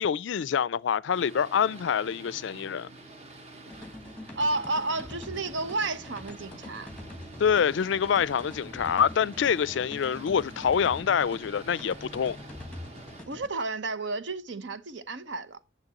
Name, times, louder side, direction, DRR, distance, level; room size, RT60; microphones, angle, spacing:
voice 1, 0.0-2.9 7.4-12.4, left 7 dB, 65° left, 0.4 m, -26 dB
Boat Water vehicle, 1.1-13.3, right 2 dB, 35° right, 1.3 m, -48 dB
sound 1, 3.7-13.5, left 1 dB, 5° left, 1.0 m, -44 dB
voice 2, 4.4-6.9 13.3-15.6, right 2 dB, 65° right, 0.8 m, -31 dB
10.5 x 6.6 x 2.9 m
head